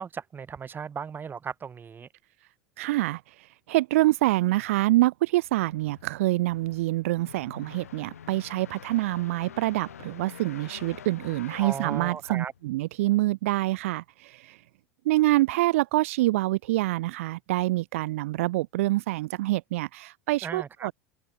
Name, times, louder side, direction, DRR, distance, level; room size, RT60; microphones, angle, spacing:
voice 1, 0.0-2.1 11.6-12.5 20.4-20.9, right 6 dB, 25° right, 1.6 m, -36 dB
voice 2, 2.8-14.6 15.0-20.9, right 18 dB, 70° right, 0.5 m, -26 dB
sound 1, 5.3-12.9, left 9 dB, 80° left, 7.7 m, -47 dB
open air
hypercardioid pair, 80°, 8 cm